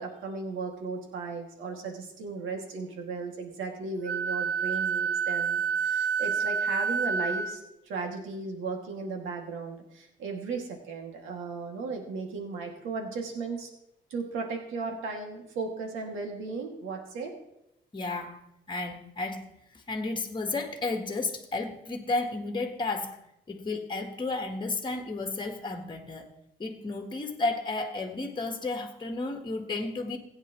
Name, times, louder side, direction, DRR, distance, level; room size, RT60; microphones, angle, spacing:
voice 1, 0.0-13.7 14.1-17.3, right 4 dB, 85° right, 2.2 m, -36 dB
Wind instrument woodwind instrument, 4.0-7.6, right 6 dB, 55° right, 1.0 m, -28 dB
voice 2, 17.9-19.5 19.9-23.2 23.5-26.3 26.6-30.2, left 3 dB, 25° left, 1.5 m, -32 dB
16.5 x 9.4 x 3.1 m
cardioid pair, 90°, 20 cm